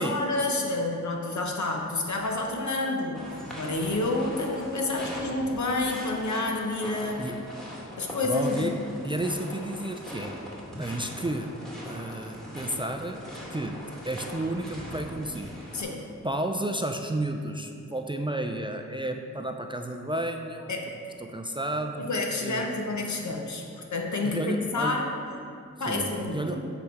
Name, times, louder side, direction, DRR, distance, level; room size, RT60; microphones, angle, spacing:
voice 1, 0.0-3.2 3.5-7.2 8.0-8.7 15.7-16.0 20.7-20.9 22.0-25.1 25.8-26.6, left 2 dB, 65° left, 1 dB, 0.9 m, -29 dB
sound 1, 3.1-15.8, equal, ahead, 1.6 m, -41 dB
voice 2, 7.2-7.5 8.2-8.8 9.0-10.3 10.8-11.6 11.8-13.2 13.5-15.5 16.2-20.7 21.2-22.7 24.2-25.0 25.9-26.7, right 1 dB, 15° right, 4 dB, 0.4 m, -32 dB
7.3 x 4.9 x 4.5 m, 2.5 s
wide cardioid pair, 75°, 31 cm